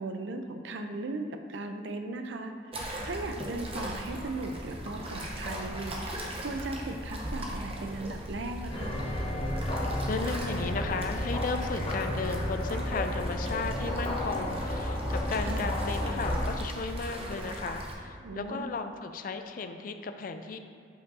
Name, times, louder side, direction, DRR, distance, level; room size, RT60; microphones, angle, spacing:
voice 1, 0.0-2.8 3.0-9.0 15.4-15.8 18.2-18.7, right 2 dB, 80° right, 6 dB, 0.5 m, -37 dB
sound 1, 2.7-17.9, equal, 30° right, 0.8 m, -38 dB
sound 2, 8.7-16.5, left 1 dB, 30° left, 0.8 m, -32 dB
voice 2, 10.1-20.6, left 4 dB, 50° left, 7 dB, 0.4 m, -35 dB
7.9 x 5.4 x 2.6 m, 2.3 s
head